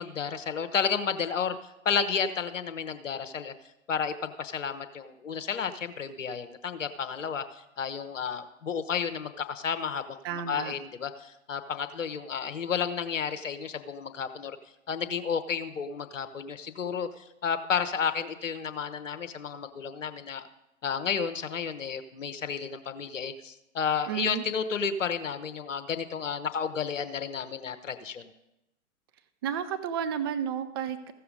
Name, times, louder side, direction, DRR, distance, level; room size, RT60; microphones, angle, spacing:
voice 1, 0.0-1.6 1.8-3.5 3.9-14.6 14.9-20.5 20.8-28.3, left 6 dB, 70° left, 11 dB, 1.0 m, -32 dB
voice 2, 10.2-10.7 24.1-24.4 29.4-31.1, right 8 dB, 20° right, 10 dB, 0.3 m, -32 dB
14.5 x 7.0 x 5.1 m, 0.90 s
figure-of-eight pair, 110°, 40 cm